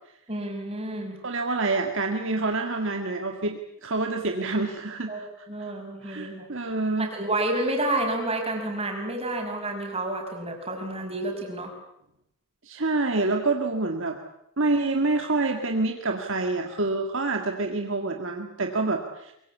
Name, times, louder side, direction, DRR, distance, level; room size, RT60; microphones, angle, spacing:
voice 1, 0.3-1.2 5.1-6.5 7.0-11.7, right 1 dB, 25° right, 2 dB, 5.7 m, -30 dB
voice 2, 1.2-5.7 6.0-7.1 12.6-14.2 14.6-19.3, right 3 dB, 60° right, 3 dB, 2.0 m, -27 dB
24.0 x 23.5 x 8.3 m, 0.77 s
head